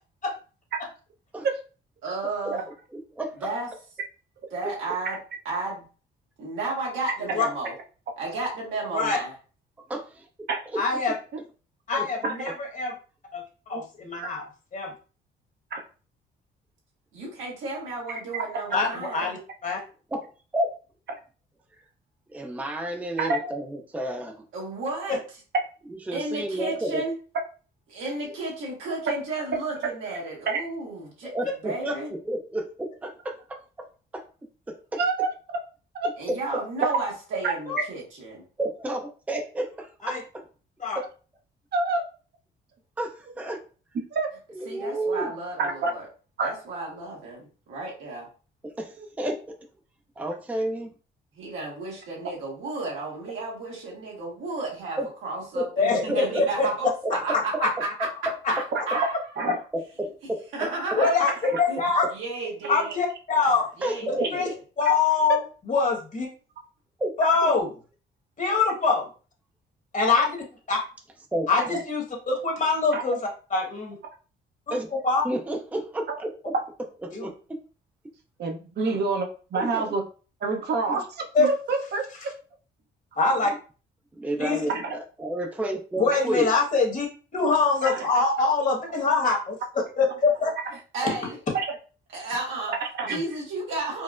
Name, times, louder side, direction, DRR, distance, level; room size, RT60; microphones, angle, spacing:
voice 1, 2.0-2.6 3.4-3.7 4.5-5.2 5.4-5.8 6.4-7.7 8.2-9.3 17.1-19.3 24.5-25.2 26.1-27.1 27.9-31.3 31.6-32.1 36.2-38.4 44.7-46.0 46.4-48.3 51.4-58.1 58.5-59.2 60.5-61.2 61.7-61.8 62.1-63.0 63.8-64.5 78.8-79.0 90.9-91.4 92.1-92.7 93.0-94.0, right 3 dB, 85° right, -3 dB, 1.5 m, -33 dB
voice 2, 3.2-3.5 4.6-4.7 9.9-10.2 10.7-10.8 12.0-12.1 20.1-20.3 20.5-20.7 22.3-24.4 25.9-27.0 31.2-32.0 32.2-33.6 34.1-34.2 34.7-35.0 38.6-40.4 41.0-41.1 43.0-43.6 44.6-45.3 48.8-49.6 50.2-50.9 55.0-55.1 55.5-55.7 56.1-56.4 57.0-57.1 59.7-60.7 63.8-64.3 67.0-67.1 67.4-67.6 71.3-71.5 74.7-75.0 75.2-76.3 77.0-77.3 79.6-79.9 80.9-81.0 84.1-84.7 85.2-86.5 93.1-93.2, right 1 dB, 10° right, 3 dB, 0.5 m, -31 dB
voice 3, 10.8-11.1 11.9-12.9 13.3-13.4 13.7-14.4 14.7-14.9 18.7-19.8 37.7-37.8 40.0-40.2 40.8-41.0 55.8-56.7 57.3-57.7 60.9-61.3 61.6-62.1 62.7-63.7 64.3-64.5 64.8-65.4 65.7-66.3 67.2-67.7 68.4-69.1 69.9-70.3 70.7-70.8 71.5-73.2 73.5-73.9 75.0-75.2 77.1-77.3 81.3-81.5 83.2-83.5 84.4-84.6 86.0-87.1 87.3-89.5 90.0-90.5, left 4 dB, 40° left, 0 dB, 1.2 m, -24 dB
voice 4, 12.2-12.5 13.7-13.8 15.7-15.8 18.3-18.4 18.7-18.8 23.2-23.5 30.5-30.6 35.0-35.6 35.9-36.1 37.4-37.5 41.7-42.0 44.1-44.3 45.6-45.9 46.4-46.5 49.0-49.1 58.7-58.8 59.4-59.6 61.5-61.6 64.2-64.3 64.9-65.0 71.6-71.8 72.9-73.0 78.4-80.0 80.4-82.0 84.7-84.9 87.8-88.1 91.5-91.6 92.8-93.2, right 4 dB, 55° right, 3 dB, 0.7 m, -27 dB
4.3 x 2.0 x 2.4 m, 0.36 s
cardioid pair, 90°, 20 cm